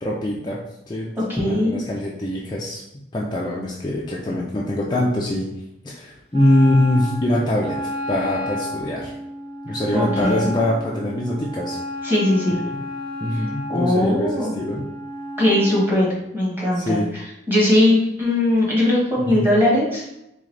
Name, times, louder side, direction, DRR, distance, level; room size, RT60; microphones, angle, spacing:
voice 1, 0.0-0.6 0.9-1.1 1.4-2.8 3.1-5.5 5.8-9.1 9.6-11.8 13.2-14.9 16.7-17.1 19.2-19.5, left 1 dB, 20° left, -4 dB, 0.4 m, -23 dB
voice 2, 1.2-1.8 9.9-10.5 12.0-12.6 13.7-14.5 15.4-16.1 16.3-17.0 17.5-20.1, left 1 dB, 10° right, -6 dB, 1.2 m, -19 dB
Wind instrument woodwind instrument, 6.3-15.9, equal, 30° right, 0.8 m, -31 dB
3.7 x 3.4 x 3.2 m, 0.87 s
head